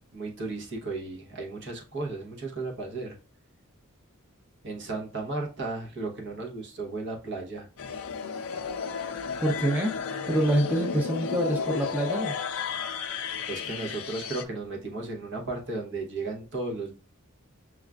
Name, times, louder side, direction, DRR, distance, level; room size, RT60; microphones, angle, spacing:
voice 1, 0.1-3.2 4.6-7.9 13.5-17.0, right 3 dB, 60° right, 0.9 m, -35 dB
sound 1, 7.8-14.4, left 6 dB, 70° left, 0.4 m, -33 dB
voice 2, 9.4-9.9 10.3-12.3, right 1 dB, 10° right, 0.5 m, -26 dB
6.1 x 2.4 x 2.3 m
head